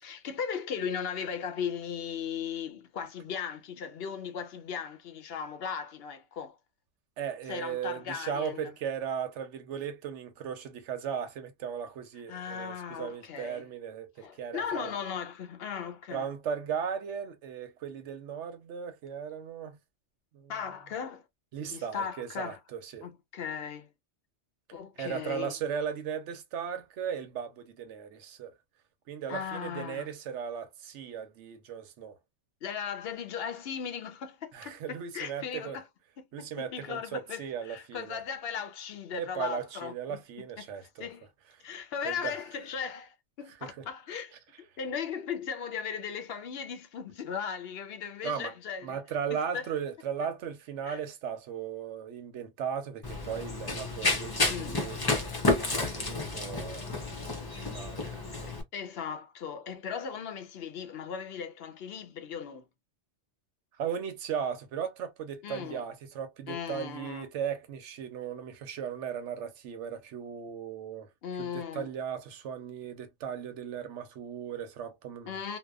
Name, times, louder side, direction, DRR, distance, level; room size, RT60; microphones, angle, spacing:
voice 1, 0.0-6.6 7.5-8.7 12.3-13.7 14.2-16.2 20.5-21.2 21.7-22.6 23.0-23.9 24.7-25.5 29.3-30.1 32.6-35.8 36.4-40.7 41.0-41.3 41.6-49.0 49.3-49.7 50.2-50.3 50.8-51.0 54.5-54.8 58.7-62.7 65.4-65.8 66.5-67.3 71.2-71.9 75.3-75.6, left 7 dB, 65° left, 0.7 m, -37 dB
voice 2, 7.2-14.9 16.1-19.8 20.3-20.5 21.5-23.1 25.0-28.5 29.1-32.2 34.5-35.8 36.3-38.2 39.2-41.1 42.0-42.4 43.6-43.8 48.2-48.5 48.8-56.9 57.4-58.5 63.8-71.1 71.4-75.4, right 8 dB, 85° right, 1.0 m, -37 dB
Run, 53.0-58.6, left 2 dB, 30° left, 0.5 m, -31 dB
2.8 x 2.1 x 2.2 m
omnidirectional pair, 1.2 m